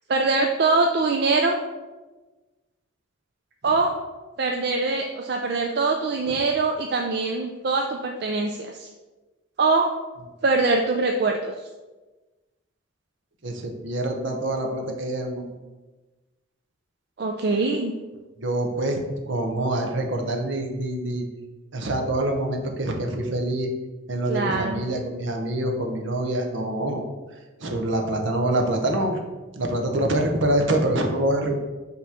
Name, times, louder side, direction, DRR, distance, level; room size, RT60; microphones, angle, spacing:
voice 1, 0.1-1.6 3.6-4.0 4.4-8.9 9.6-9.9 10.4-11.5 17.2-17.9 24.3-24.9, right 3 dB, 50° right, 2 dB, 0.4 m, -23 dB
voice 2, 13.4-15.5 18.4-19.0 19.3-21.2 21.7-23.7 24.1-27.0 27.6-29.2 29.6-31.5, right 1 dB, 65° right, 3 dB, 0.9 m, -25 dB
5.9 x 3.0 x 5.6 m, 1.2 s
head